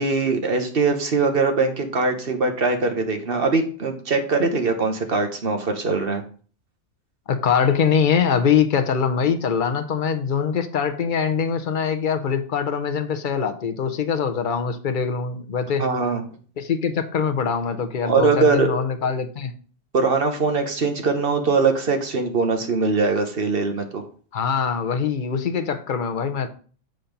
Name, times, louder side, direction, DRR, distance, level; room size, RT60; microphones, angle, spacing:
voice 1, 0.0-6.2 15.8-16.2 18.0-18.7 19.9-24.1, right 4 dB, 40° right, 5 dB, 1.2 m, -21 dB
voice 2, 7.3-15.8 16.6-19.5 24.3-26.5, left 6 dB, 45° left, 7 dB, 0.8 m, -23 dB
7.8 x 4.3 x 5.2 m, 0.43 s
omnidirectional pair, 1.5 m